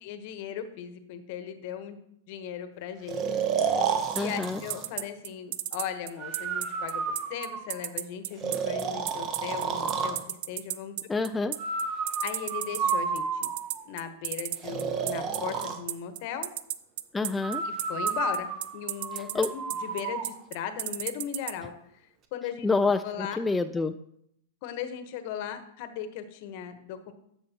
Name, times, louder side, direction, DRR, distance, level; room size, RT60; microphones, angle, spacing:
voice 1, 0.0-2.0 2.3-3.8 4.1-7.0 7.3-11.0 12.2-13.5 13.8-16.5 17.6-21.7 22.3-22.7 23.0-23.4 24.6-27.1, left 9 dB, 55° left, 9 dB, 1.0 m, -37 dB
Breathing, 3.1-4.9 6.2-7.9 8.4-10.2 11.6-13.8 14.6-15.8 17.4-20.3, right 5 dB, 35° right, 1.0 m, -31 dB
voice 2, 4.2-4.6 11.1-11.5 17.1-17.6 19.3-19.5 22.6-23.9, left 3 dB, 10° left, 8 dB, 0.3 m, -27 dB
sound 1, 4.2-21.5, right 14 dB, 55° right, 0.5 m, -33 dB
11.5 x 6.4 x 2.9 m, 0.74 s
hypercardioid pair, 125°, 0 cm